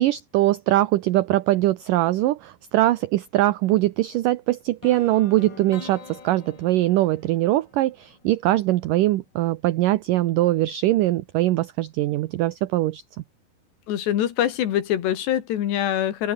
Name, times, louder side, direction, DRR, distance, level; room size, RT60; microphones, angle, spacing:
voice 1, 0.0-13.0, right 15 dB, 75° right, 2.0 m, -22 dB
sound 1, 4.8-8.8, left 6 dB, 35° left, 2.1 m, -44 dB
voice 2, 13.9-16.3, left 11 dB, 85° left, 4.2 m, -24 dB
open air
omnidirectional pair, 4.8 m